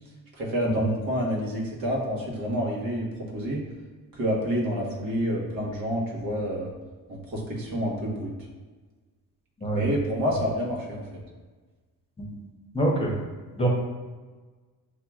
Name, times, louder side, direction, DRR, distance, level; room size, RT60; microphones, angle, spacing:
voice 1, 0.3-3.6 4.1-6.7 7.1-8.3 9.7-11.2, equal, 75° right, -3 dB, 1.4 m, -28 dB
voice 2, 12.7-13.2 13.5-13.7, right 1 dB, 15° left, -2 dB, 0.9 m, -26 dB
6.5 x 2.8 x 2.4 m, 1.3 s
cardioid pair, 105°, 35 cm